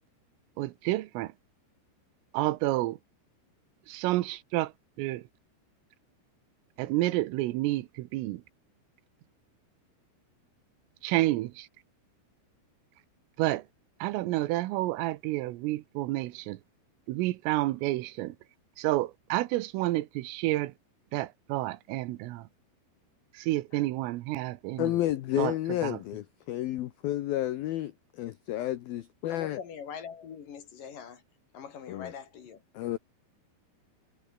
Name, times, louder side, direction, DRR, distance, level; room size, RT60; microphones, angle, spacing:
voice 1, 0.6-1.3 2.3-3.0 3.9-4.7 5.0-5.2 6.8-8.4 11.0-11.7 13.4-13.6 14.0-16.6 17.1-18.4 18.8-20.7 21.1-22.5 23.4-25.0 25.4-25.5 25.8-26.0, right 17 dB, 90° right, 3.7 m, -29 dB
voice 2, 24.8-29.6 31.9-32.1 32.7-33.0, left 14 dB, 80° left, 2.1 m, -31 dB
voice 3, 29.3-31.2 31.5-32.6, left 7 dB, 50° left, 3.4 m, -43 dB
omnidirectional pair, 5.7 m